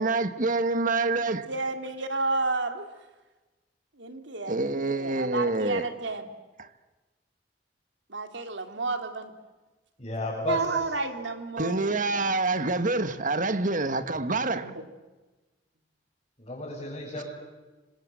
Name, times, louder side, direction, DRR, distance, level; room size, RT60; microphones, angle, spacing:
voice 1, 0.0-1.5 4.5-5.9 6.6-6.7 11.6-14.7, right 3 dB, 50° right, 1.6 m, -27 dB
voice 2, 1.5-2.9 4.0-6.3 8.1-9.3 10.5-11.9 14.5-14.7, right 3 dB, 90° right, 3.0 m, -31 dB
voice 3, 10.0-10.9 16.4-17.2, left 2 dB, 30° left, 7.5 m, -33 dB
27.0 x 26.5 x 7.7 m
head